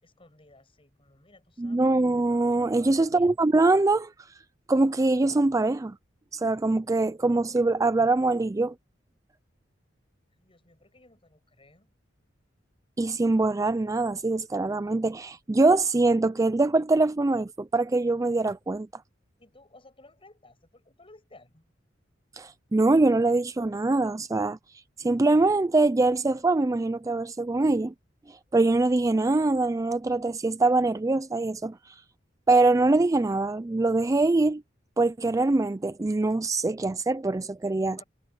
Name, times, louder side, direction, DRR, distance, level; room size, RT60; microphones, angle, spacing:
voice 1, 0.0-1.9 2.8-3.3 10.4-11.9 19.4-21.7 37.8-38.0, left 2 dB, 30° left, 7.8 m, -56 dB
voice 2, 1.6-4.3 4.7-6.0 6.3-8.7 13.0-18.9 22.4-24.6 25.0-27.9 28.3-32.0 32.5-34.6 35.0-38.0, right 2 dB, 15° right, 0.4 m, -23 dB
head